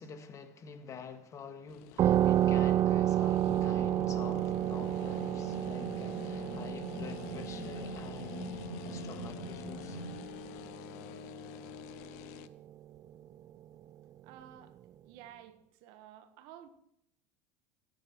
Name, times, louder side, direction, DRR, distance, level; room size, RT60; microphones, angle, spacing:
voice 1, 0.0-10.0, left 6 dB, 35° left, 1.8 m, -48 dB
sound 1, 1.7-12.5, left 14 dB, 70° left, 0.7 m, -49 dB
sound 2, 2.0-11.2, right 12 dB, 40° right, 0.5 m, -31 dB
sound 3, 3.5-10.2, left 2 dB, 55° left, 4.3 m, -44 dB
voice 2, 14.2-14.8 15.0-16.7, right 11 dB, 65° right, 1.4 m, -52 dB
14.5 x 10.0 x 4.5 m
hypercardioid pair, 95°, 9 cm